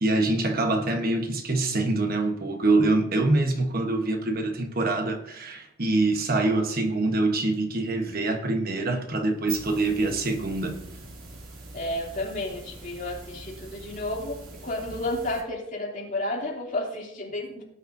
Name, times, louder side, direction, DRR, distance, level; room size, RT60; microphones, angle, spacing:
voice 1, 0.0-10.8, right 2 dB, 45° right, 1.2 m, -25 dB
sound 1, 9.2-15.4, right 3 dB, 75° right, 2.7 m, -43 dB
voice 2, 11.7-17.6, left 1 dB, 40° left, 2.9 m, -32 dB
18.0 x 9.8 x 2.7 m
head